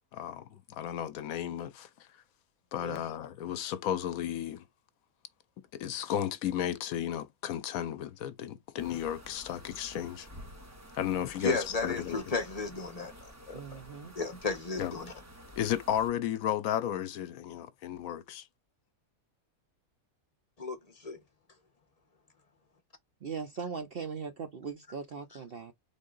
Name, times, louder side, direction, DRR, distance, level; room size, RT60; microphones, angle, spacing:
voice 1, 0.1-2.1 2.7-4.6 5.7-10.3 10.9-12.2 14.8-15.0 15.6-18.5, left 10 dB, 75° left, 1.0 m, -34 dB
sound 1, 8.8-16.1, equal, 10° right, 1.0 m, -51 dB
voice 2, 11.4-13.1 13.5-13.8 14.2-15.1 20.6-20.8 21.0-21.2, left 3 dB, 30° left, 1.0 m, -33 dB
voice 3, 13.5-14.1 23.2-25.7, right 5 dB, 55° right, 0.7 m, -39 dB
3.8 x 3.7 x 3.7 m
omnidirectional pair, 1.5 m